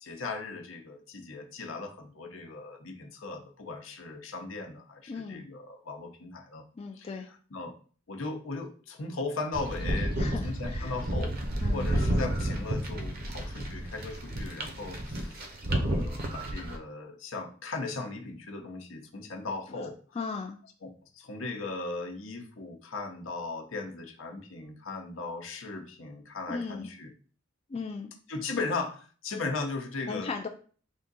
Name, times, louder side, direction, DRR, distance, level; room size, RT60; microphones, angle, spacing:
voice 1, 0.0-6.6 6.9-7.1 7.5-7.7 8.1-10.1 10.4-11.4 11.7-15.4 15.7-20.0 20.8-27.1 28.3-30.3, left 3 dB, 80° left, 4 dB, 0.8 m, -37 dB
voice 2, 5.1-5.4 6.8-7.3 10.2-10.9 11.6-11.9 19.7-19.9 20.1-20.6 26.5-26.9 27.7-28.1 30.1-30.5, left 4 dB, 30° left, 4 dB, 0.4 m, -37 dB
sound 1, 9.5-16.8, right 1 dB, 50° right, 0.7 m, -31 dB
3.6 x 2.7 x 3.9 m, 0.41 s
head